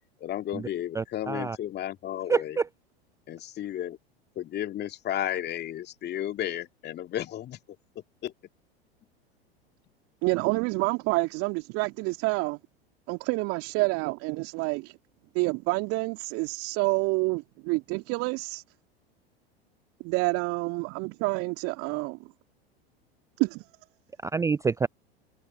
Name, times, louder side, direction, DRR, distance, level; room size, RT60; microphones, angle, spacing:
voice 1, 0.2-2.6 3.3-4.0 4.4-7.6 8.2-8.3, left 12 dB, 35° left, 2.4 m, -33 dB
voice 2, 0.9-1.6 2.3-2.7 24.2-24.9, right 5 dB, 10° right, 0.5 m, -27 dB
voice 3, 10.2-12.6 13.1-15.0 15.3-18.6 20.0-22.2 23.4-23.6, right 27 dB, 45° right, 2.3 m, -28 dB
figure-of-eight pair, 85°, 31 cm